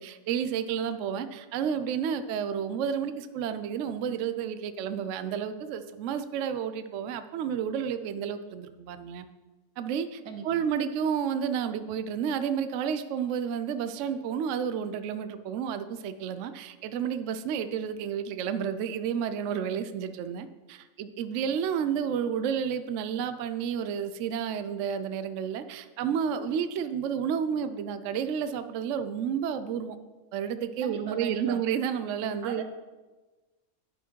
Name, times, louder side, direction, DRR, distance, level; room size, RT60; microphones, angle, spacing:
voice 1, 0.0-9.3 9.8-30.0 30.3-32.6, right 8 dB, 70° right, 11 dB, 0.8 m, -31 dB
voice 2, 10.2-10.6 30.8-31.6 32.4-32.6, right 6 dB, 90° right, 7 dB, 1.3 m, -39 dB
10.5 x 4.7 x 4.5 m, 1.2 s
omnidirectional pair, 1.5 m